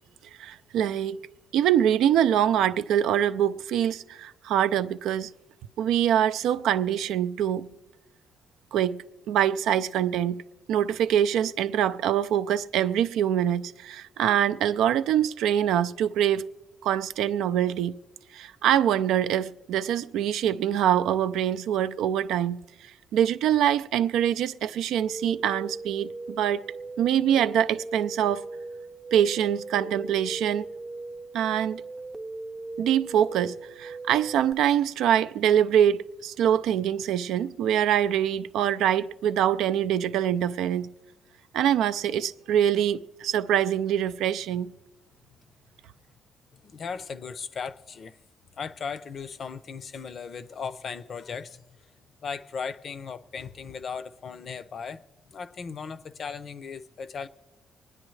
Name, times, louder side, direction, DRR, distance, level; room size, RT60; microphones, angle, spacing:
voice 1, 0.4-1.2 1.5-5.3 5.8-7.7 8.7-10.4 10.7-16.5 16.8-18.0 18.3-26.6 27.0-28.5 29.1-30.7 31.3-31.8 32.8-40.9 41.5-44.7, right 10 dB, 85° right, 0.3 m, -24 dB
sound 1, 25.0-34.5, right 2 dB, 20° right, 0.5 m, -39 dB
voice 2, 46.5-48.2 48.6-51.6 52.2-55.0 55.3-57.3, left 6 dB, 50° left, 0.5 m, -37 dB
24.5 x 9.7 x 3.2 m
cardioid pair, 90°, 0 cm